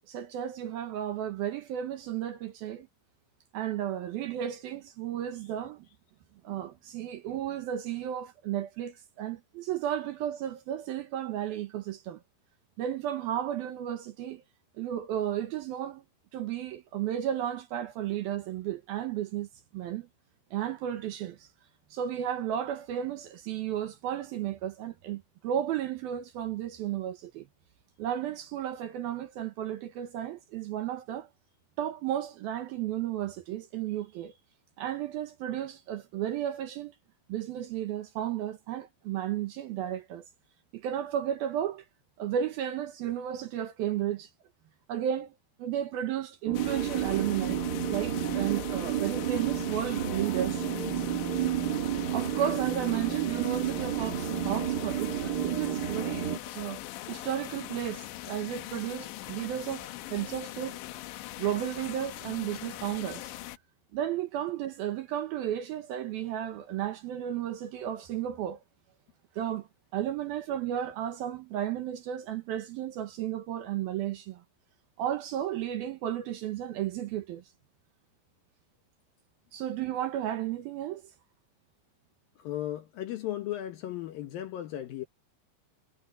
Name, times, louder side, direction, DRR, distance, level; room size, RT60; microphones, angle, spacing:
voice 1, 0.1-2.9 3.5-5.9 6.4-12.2 12.8-14.4 14.8-16.0 16.3-19.5 19.7-20.1 20.5-21.5 21.9-27.5 28.0-31.3 31.8-34.3 34.8-36.9 37.3-40.3 40.7-41.8 42.2-44.3 44.9-45.3 45.6-47.6 47.9-50.6 52.1-56.8 57.1-60.8 61.4-63.3 63.9-68.6 69.4-69.7 69.9-74.4 75.0-77.4 79.5-81.0, right 11 dB, 70° right, 2.6 m, -33 dB
sound 1, 46.5-63.6, left 16 dB, 85° left, 3.3 m, -41 dB
sound 2, 46.5-56.4, right 10 dB, 50° right, 1.2 m, -31 dB
voice 2, 82.4-85.1, left 12 dB, 70° left, 2.4 m, -36 dB
omnidirectional pair, 5.2 m